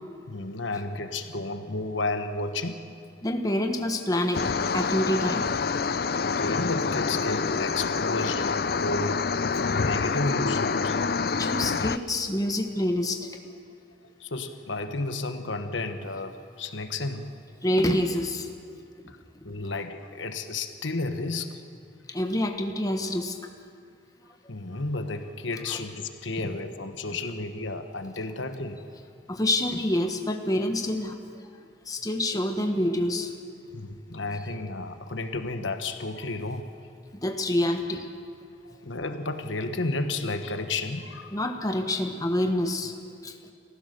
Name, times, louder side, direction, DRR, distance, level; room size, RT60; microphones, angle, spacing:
voice 1, 0.3-2.8 6.2-8.5 8.8-9.2 9.7-11.0 14.2-17.3 19.1-19.2 19.4-21.6 24.5-28.8 33.7-36.7 38.6-41.4, left 2 dB, 90° left, 8 dB, 1.3 m, -32 dB
voice 2, 3.2-4.4 4.7-5.5 11.3-13.3 17.6-18.5 22.1-23.3 25.7-25.8 26.4-26.5 29.3-31.2 31.9-33.3 37.2-38.1 41.3-42.9 43.2-43.4, left 1 dB, 20° left, 4 dB, 1.3 m, -27 dB
sound 1, 4.3-12.0, left 5 dB, 55° left, 0.5 m, -27 dB
29.5 x 15.0 x 6.8 m, 2.3 s
head